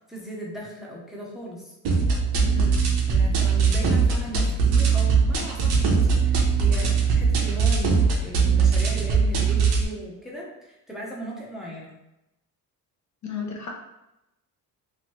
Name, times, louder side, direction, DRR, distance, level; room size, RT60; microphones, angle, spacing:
voice 1, 0.1-1.7 3.0-12.0, right 1 dB, ahead, -4 dB, 0.6 m, -37 dB
sound 1, 1.8-9.8, right 5 dB, 80° right, 0.8 m, -21 dB
voice 2, 2.4-2.9 13.2-13.7, left 6 dB, 50° left, 1 dB, 0.5 m, -34 dB
3.1 x 2.6 x 3.0 m, 0.92 s
cardioid pair, 145°, 39 cm